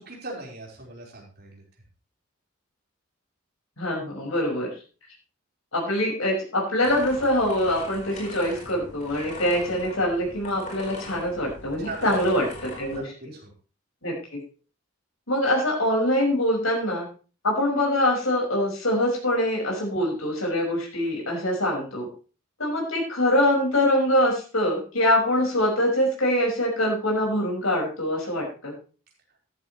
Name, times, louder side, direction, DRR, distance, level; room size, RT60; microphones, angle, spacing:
voice 1, 0.0-1.6 11.8-12.1 12.9-13.0 13.3-13.5, right 2 dB, 50° right, -2 dB, 4.6 m, -39 dB
voice 2, 3.8-4.7 5.7-13.0 14.0-14.1 15.3-17.1 17.4-22.1 22.6-28.7, left 1 dB, 85° left, -2 dB, 5.6 m, -24 dB
sound 1, 6.8-13.0, left 2 dB, 35° left, 4.5 m, -40 dB
14.0 x 12.0 x 3.2 m, 0.35 s
head